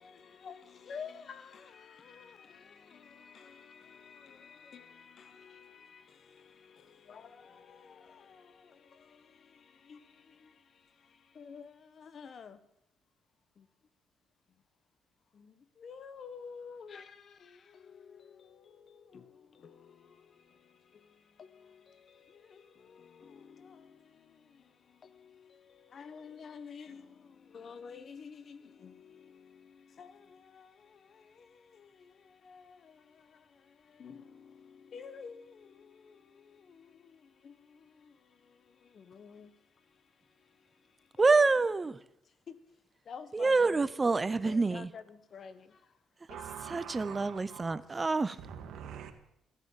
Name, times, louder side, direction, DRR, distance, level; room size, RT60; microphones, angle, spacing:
voice 1, 0.0-12.6 13.6-13.7 15.3-41.3 42.5-42.6 43.0-43.8 44.4-45.9 46.3-46.4, left 6 dB, 50° left, 1.2 m, -52 dB
voice 2, 41.2-42.0 43.3-44.9 46.7-48.4, right 3 dB, 25° right, 0.7 m, -27 dB
voice 3, 46.3-47.8 48.4-49.1, right 8 dB, 80° right, 1.8 m, -45 dB
14.5 x 9.9 x 7.4 m
cardioid pair, 90°, 0 cm